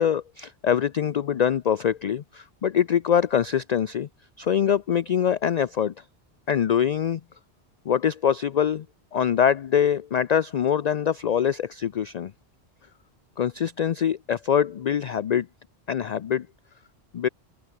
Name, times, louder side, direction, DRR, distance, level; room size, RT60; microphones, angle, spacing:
voice 1, 0.0-4.1 4.4-5.9 6.5-7.2 7.9-8.9 9.1-12.3 13.4-15.5 15.9-16.5 17.1-17.3, left 8 dB, 55° left, 0.5 m, -24 dB
open air
omnidirectional pair, 1.1 m